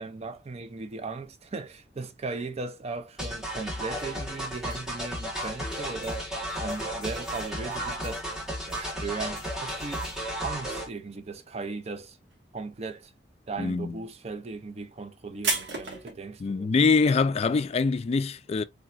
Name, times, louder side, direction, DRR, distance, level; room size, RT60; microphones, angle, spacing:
voice 1, 0.0-8.3 8.7-10.1 10.4-12.2 12.5-13.1 13.5-16.7, right 4 dB, 35° right, 0.5 m, -37 dB
sound 1, 3.2-10.9, equal, 5° right, 1.1 m, -34 dB
sound 2, 3.2-11.0 11.3-11.9 12.2-16.1, right 3 dB, 80° right, 1.4 m, -37 dB
sound 3, 5.7-10.4, left 2 dB, 20° left, 1.3 m, -51 dB
voice 2, 13.6-13.9 16.4-18.6, left 4 dB, 35° left, 0.3 m, -24 dB
3.3 x 3.0 x 2.3 m
head